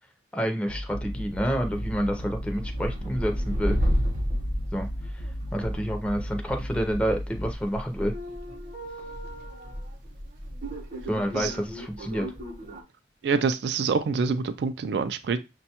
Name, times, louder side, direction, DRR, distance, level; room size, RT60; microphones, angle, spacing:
voice 1, 0.3-3.8 4.7-4.9 5.5-8.1 11.1-12.3, equal, 5° left, 0.5 m, -28 dB
sound 1, 0.7-7.5, equal, 80° left, 0.8 m, -35 dB
sound 2, 1.1-12.8, equal, 45° right, 0.8 m, -33 dB
voice 2, 13.2-15.4, right 5 dB, 65° right, 0.3 m, -26 dB
6.0 x 2.2 x 2.8 m
head